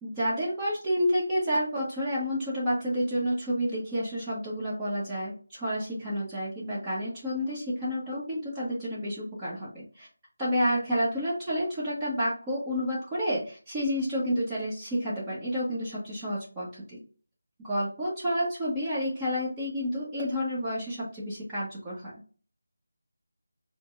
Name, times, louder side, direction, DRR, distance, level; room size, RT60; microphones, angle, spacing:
voice 1, 0.0-10.1 10.4-17.0 17.6-22.1, equal, 10° right, -9 dB, 1.1 m, -30 dB
5.1 x 2.2 x 2.5 m, 0.40 s
figure-of-eight pair, 165°, 0 cm